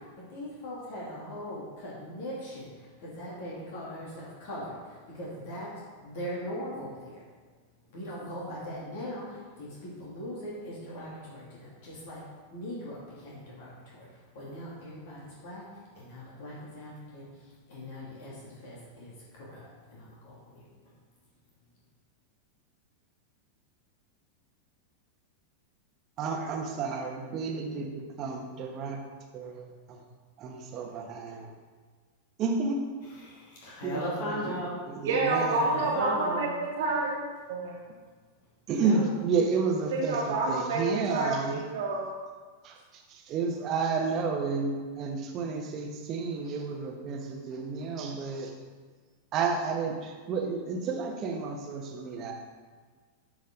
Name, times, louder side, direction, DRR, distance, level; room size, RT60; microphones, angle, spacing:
voice 1, 0.0-5.7 6.0-7.2 7.9-12.2 12.5-15.6 15.9-17.3 17.7-20.7 33.2-34.9 35.5-36.6 38.7-39.1, equal, 50° left, -6 dB, 2.8 m, -39 dB
voice 2, 26.2-29.0 29.3-30.0 30.4-31.5 32.4-32.8 33.8-34.5 34.9-35.9 38.7-41.6 42.6-48.5 49.3-52.3, right 4 dB, 35° right, 2 dB, 1.4 m, -31 dB
voice 3, 35.0-37.2 37.5-37.8 39.9-40.8 41.1-42.1, right 3 dB, 55° right, -3 dB, 1.2 m, -28 dB
12.5 x 5.1 x 3.9 m, 1.5 s
figure-of-eight pair, 90°, 0 cm